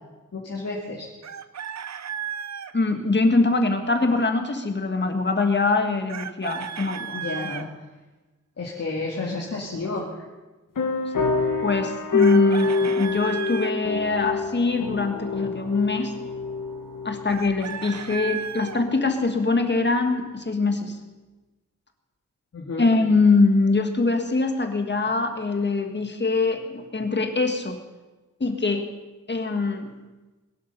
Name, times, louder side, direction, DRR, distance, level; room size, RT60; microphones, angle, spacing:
voice 1, 0.3-1.1 7.1-7.7 8.6-10.1 22.5-22.9, left 3 dB, 50° left, -3 dB, 2.3 m, -31 dB
Chicken rooster, 1.2-2.7 6.1-7.7 12.2-13.7 17.3-18.8, right 8 dB, 60° right, 0.7 m, -34 dB
voice 2, 2.7-7.2 11.2-11.3 11.6-16.1 17.0-21.0 22.8-27.8 28.4-28.9 29.3-29.9, left 3 dB, 35° left, 6 dB, 1.7 m, -23 dB
sound 1, 10.8-18.9, left 3 dB, 80° left, 2.1 m, -26 dB
21.5 x 11.5 x 5.4 m, 1.2 s
wide cardioid pair, 175°, 32 cm